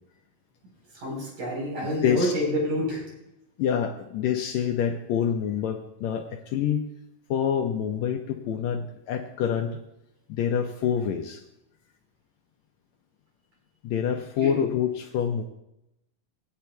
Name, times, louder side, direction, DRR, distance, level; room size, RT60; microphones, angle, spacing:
voice 1, 1.0-3.0 14.4-14.6, equal, 55° right, -4 dB, 5.4 m, -28 dB
voice 2, 2.0-2.3 3.6-6.9 7.3-9.8 10.3-11.4 13.8-15.4, left 8 dB, 80° left, 4 dB, 1.6 m, -26 dB
19.5 x 9.7 x 2.2 m, 0.86 s
omnidirectional pair, 3.9 m